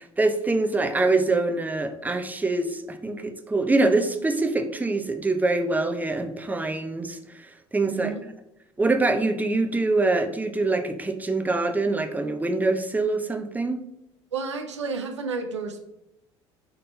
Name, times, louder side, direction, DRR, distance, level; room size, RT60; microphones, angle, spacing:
voice 1, 0.0-8.1 8.8-13.8, right 2 dB, 10° right, 7 dB, 0.8 m, -24 dB
voice 2, 7.9-8.2 14.3-15.8, right 4 dB, 85° right, 5 dB, 0.7 m, -31 dB
5.5 x 4.2 x 5.4 m, 0.81 s
figure-of-eight pair, 60°, 15 cm